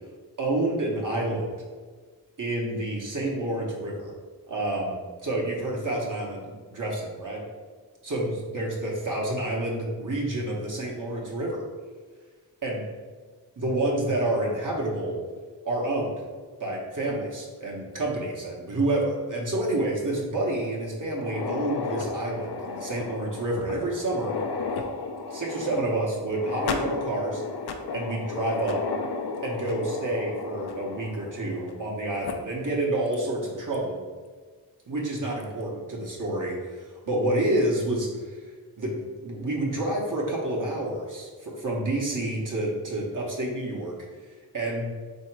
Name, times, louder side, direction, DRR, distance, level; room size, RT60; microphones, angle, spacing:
voice 1, 0.4-1.5 2.4-4.1 4.5-7.4 8.0-11.6 12.6-12.8 13.6-15.2 15.6-16.1 16.6-24.3 25.3-27.4 27.9-28.8 29.4-34.0 34.9-38.4 38.8-43.9 44.5-44.9, right 1 dB, 45° right, -3 dB, 0.9 m, -29 dB
sound 1, 21.1-31.9 32.2-32.3 33.1-33.2 33.7-33.8 35.2-35.4, left 4 dB, 65° left, 0.5 m, -34 dB
3.7 x 2.8 x 4.4 m, 1.5 s
wide cardioid pair, 75°, 42 cm